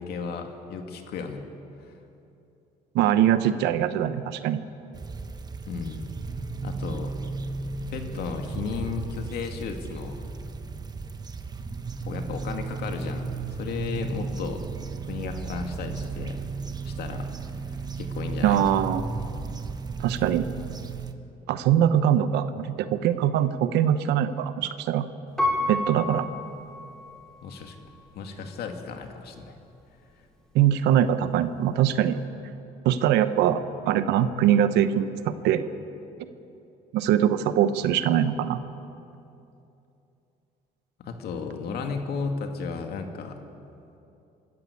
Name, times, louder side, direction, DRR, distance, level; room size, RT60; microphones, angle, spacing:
voice 1, 0.0-1.4 1.8-1.9 5.7-6.1 6.6-7.1 7.9-10.2 12.0-14.6 15.1-16.4 16.8-17.3 18.0-18.9 27.4-27.8 28.1-29.6 41.0-43.4, left 5 dB, 70° left, 4 dB, 2.3 m, -34 dB
voice 2, 2.9-4.6 18.4-19.0 20.0-20.5 21.5-25.1 25.7-26.3 30.5-32.2 32.8-35.6 36.9-38.6, right 10 dB, 85° right, 11 dB, 1.0 m, -22 dB
sound 1, 4.9-21.1, right 4 dB, 25° right, 1.1 m, -34 dB
Piano, 25.4-27.4 27.9-28.0, left 1 dB, 5° left, 4.2 m, -29 dB
25.0 x 13.5 x 8.5 m, 2.8 s
cardioid pair, 110°, 17 cm